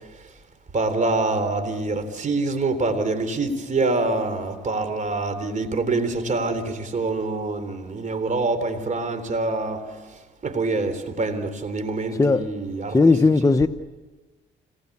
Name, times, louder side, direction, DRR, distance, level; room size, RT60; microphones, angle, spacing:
voice 1, 0.7-9.9 10.4-13.1, right 3 dB, 40° right, 3.8 m, -25 dB
voice 2, 12.9-13.7, left 3 dB, 15° left, 0.8 m, -17 dB
26.0 x 20.5 x 8.6 m
cardioid pair, 90°, 20 cm